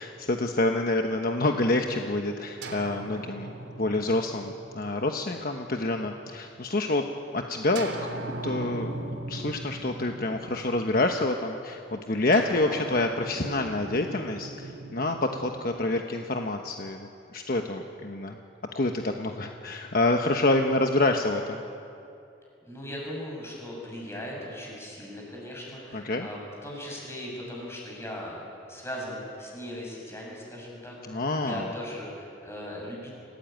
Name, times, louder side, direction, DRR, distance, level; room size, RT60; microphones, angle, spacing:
voice 1, 0.0-7.0 7.3-7.9 8.4-8.9 9.3-18.4 18.7-21.6 25.9-26.3 31.1-31.7, left 2 dB, 50° left, 4 dB, 1.2 m, -27 dB
sound 1, 2.6-6.4 7.7-11.3 12.3-16.5, right 2 dB, 80° right, 3.3 m, -39 dB
voice 2, 22.7-28.4 28.7-33.1, equal, 15° left, -2 dB, 7.2 m, -38 dB
27.0 x 17.5 x 9.3 m, 2.6 s
head